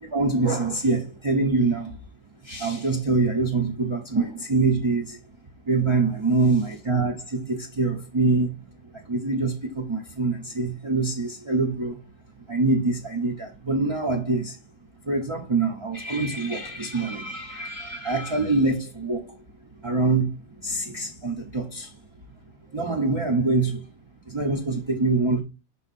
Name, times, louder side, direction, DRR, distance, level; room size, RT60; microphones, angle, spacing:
voice 1, 0.0-2.0 2.4-5.2 5.6-8.6 8.9-12.0 12.5-14.6 15.0-19.4 19.8-21.9 22.7-23.8 24.3-25.4, right 3 dB, 25° right, 0.6 m, -25 dB
5.7 x 4.2 x 4.1 m
omnidirectional pair, 1.6 m